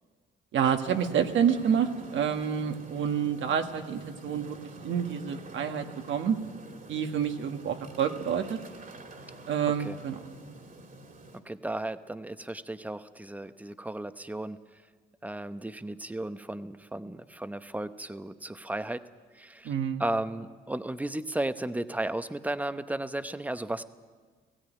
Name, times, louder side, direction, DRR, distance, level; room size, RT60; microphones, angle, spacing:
voice 1, 0.5-4.6 4.8-6.4 6.9-8.6 9.5-10.2 19.6-20.0, right 8 dB, 70° right, 6 dB, 1.6 m, -28 dB
sound 1, 0.8-11.4, right 1 dB, 45° right, 2.6 m, -47 dB
voice 2, 11.4-14.6 15.2-19.0 19.3-19.7 20.0-23.8, right 1 dB, 10° right, 11 dB, 0.9 m, -34 dB
17.5 x 16.0 x 9.2 m, 1.5 s
cardioid pair, 90°, 20 cm